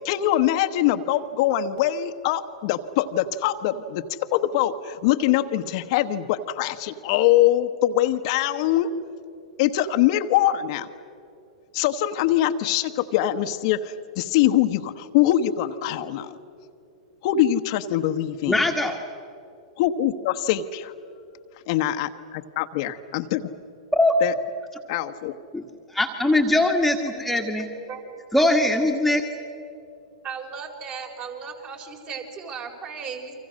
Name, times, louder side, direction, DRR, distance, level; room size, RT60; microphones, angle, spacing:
voice 1, 0.0-8.9 9.6-10.9 11.7-16.4 17.2-18.6 19.8-20.9 21.7-23.5 24.2-24.3 24.9-25.4, left 12 dB, 55° left, 7 dB, 1.1 m, -23 dB
voice 2, 18.5-19.0 23.9-24.2 25.5-25.6 25.9-27.7 28.3-29.2, left 1 dB, 5° left, 2 dB, 1.7 m, -21 dB
voice 3, 30.2-33.3, right 6 dB, 35° right, 2 dB, 4.6 m, -36 dB
30.0 x 25.0 x 6.4 m, 2.6 s
hypercardioid pair, 115°, 4 cm